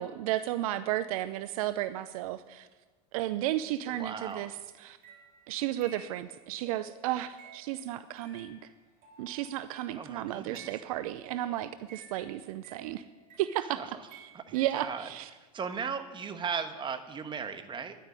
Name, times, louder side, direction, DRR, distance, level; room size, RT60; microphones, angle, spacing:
voice 1, 0.0-2.7 3.1-4.5 4.8-5.0 5.5-8.6 9.2-13.0 13.4-13.8 14.1-14.2 14.5-15.3, right 14 dB, 70° right, 13 dB, 0.6 m, -33 dB
voice 2, 3.9-4.6 9.9-10.7 13.8-14.0 14.3-15.1 15.5-18.0, right 6 dB, 25° right, 8 dB, 1.3 m, -37 dB
sound 1, 4.2-10.1 10.6-13.8 14.1-14.8, right 5 dB, 45° right, 3.7 m, -54 dB
11.0 x 9.3 x 9.8 m, 1.2 s
hypercardioid pair, 95°, 19 cm